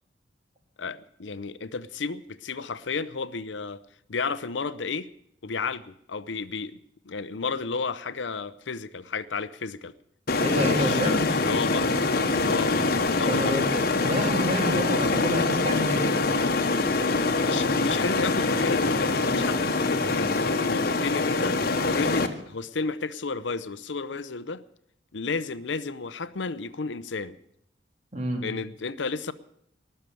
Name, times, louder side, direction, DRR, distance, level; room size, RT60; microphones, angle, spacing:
voice 1, 0.8-3.8 4.1-5.1 5.4-6.8 7.0-9.9 10.7-12.1 12.4-12.8 13.2-13.6 17.4-24.6 25.1-27.4 28.4-29.3, left 4 dB, 85° left, 15 dB, 0.7 m, -32 dB
sound 1, 10.3-22.3, left 3 dB, 55° left, 1.2 m, -24 dB
voice 2, 10.4-11.2 13.3-16.1 28.1-28.4, equal, 40° right, 2 dB, 3.3 m, -28 dB
19.0 x 6.7 x 9.2 m, 0.71 s
head